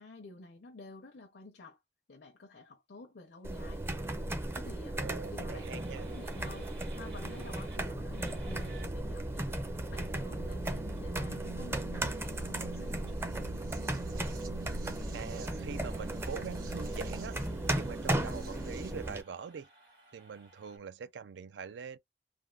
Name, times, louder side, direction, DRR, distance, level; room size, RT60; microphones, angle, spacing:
voice 1, 0.0-1.8 2.1-3.8 4.5-5.0 5.3-9.5 9.9-13.0, left 2 dB, 70° left, 0.6 m, -50 dB
sound 1, 3.4-19.2, right 1 dB, 15° right, 0.4 m, -36 dB
sound 2, 5.0-20.8, right 3 dB, 70° right, 1.6 m, -60 dB
voice 2, 5.0-6.1 15.1-19.7 20.1-22.0, right 6 dB, 85° right, 0.4 m, -44 dB
sound 3, 7.8-18.9, right 1 dB, 55° right, 1.0 m, -43 dB
3.4 x 2.1 x 2.3 m
head